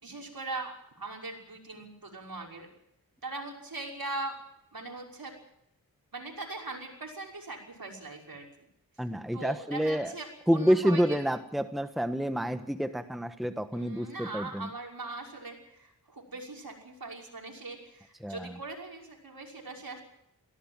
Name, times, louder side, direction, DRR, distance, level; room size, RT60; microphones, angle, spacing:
voice 1, 0.0-2.7 3.2-4.4 4.7-5.3 6.1-8.5 9.3-11.2 13.7-20.0, right 3 dB, 60° right, 0 dB, 5.8 m, -40 dB
voice 2, 9.0-10.1 10.5-14.7 18.2-18.5, equal, ahead, 9 dB, 1.2 m, -28 dB
18.0 x 16.5 x 9.0 m, 0.76 s
cardioid pair, 40°, 39 cm